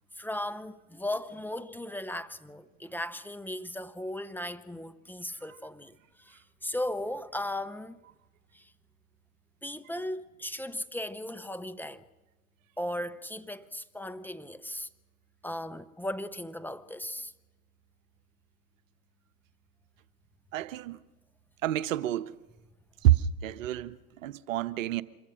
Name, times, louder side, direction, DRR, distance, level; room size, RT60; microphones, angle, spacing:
voice 1, 0.1-8.0 8.5-8.7 9.6-12.1 12.8-14.9 15.4-17.3, left 1 dB, 5° left, 1.0 m, -37 dB
voice 2, 20.5-21.0 21.6-22.4 23.0-25.0, right 12 dB, 70° right, 1.1 m, -28 dB
26.0 x 22.0 x 6.3 m
hypercardioid pair, 85°, 41 cm